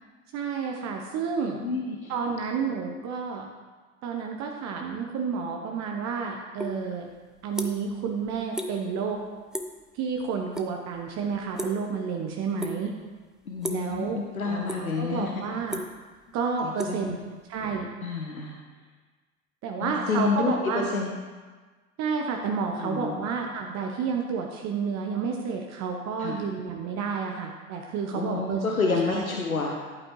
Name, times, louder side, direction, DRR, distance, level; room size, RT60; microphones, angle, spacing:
voice 1, 0.3-1.6 2.1-3.4 4.0-7.1 7.4-9.2 9.9-12.9 13.7-14.2 14.4-15.8 16.3-17.2 17.5-17.9 19.6-20.9 22.0-28.6 29.1-29.2, right 5 dB, 40° right, 2 dB, 1.0 m, -30 dB
voice 2, 1.5-2.1 13.5-15.4 16.6-17.0 18.0-18.6 19.8-21.1 22.8-23.1 26.2-26.4 28.1-29.8, left 4 dB, 85° left, 0 dB, 0.9 m, -29 dB
sound 1, 6.6-6.8 7.1-8.0 8.3-8.7 9.0-9.2 9.5-9.8 10.2-10.7 10.9-12.1 12.6-13.0 13.6-13.9 14.4-15.1 15.4-17.6, equal, ahead, 0.4 m, -34 dB
11.5 x 8.6 x 3.2 m, 1.4 s
figure-of-eight pair, 70°, 42 cm